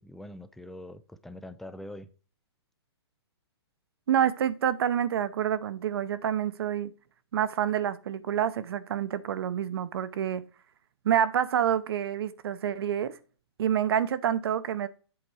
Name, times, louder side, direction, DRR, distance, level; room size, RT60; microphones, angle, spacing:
voice 1, 0.0-2.1, left 1 dB, ahead, 0.3 m, -43 dB
voice 2, 4.1-6.9 7.3-10.4 11.0-13.2 13.6-14.9, right 9 dB, 60° right, 0.7 m, -27 dB
7.9 x 4.2 x 4.8 m
hypercardioid pair, 145°, 14 cm